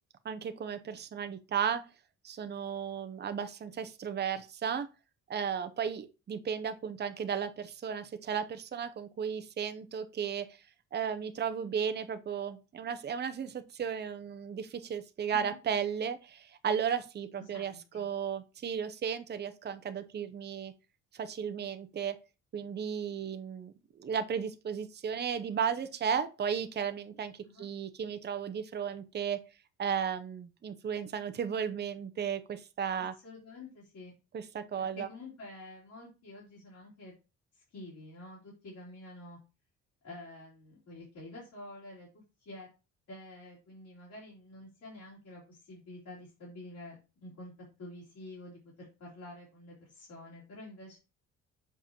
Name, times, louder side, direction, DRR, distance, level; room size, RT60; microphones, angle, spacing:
voice 1, 0.2-1.8 2.2-4.9 5.3-10.5 10.9-20.7 21.1-22.1 22.5-27.3 27.6-29.4 29.8-33.1 34.3-35.1, right 7 dB, 35° right, 0.6 m, -34 dB
voice 2, 17.4-18.0 27.4-27.7 32.9-34.2 34.9-37.1 37.5-39.4 40.0-42.7 43.1-47.5 47.8-51.0, left 2 dB, 70° left, 3.1 m, -48 dB
6.7 x 5.0 x 2.9 m
cardioid pair, 90°, 30 cm